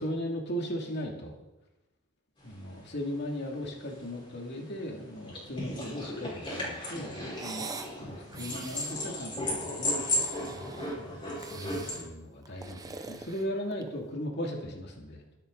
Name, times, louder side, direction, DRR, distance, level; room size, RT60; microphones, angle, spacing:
voice 1, 0.0-1.3 2.4-7.2 7.4-7.7 8.0-9.9 10.5-15.2, equal, 55° left, 0 dB, 2.7 m, -37 dB
sound 1, 2.5-2.6 2.9-3.0 3.2-12.0, left 1 dB, 25° left, 5.1 m, -35 dB
sound 2, 7.3-8.0 8.3-9.0 9.8-11.0 11.4-12.0 12.5-14.0, right 3 dB, 20° right, 0.9 m, -43 dB
23.0 x 8.7 x 4.0 m, 0.97 s
head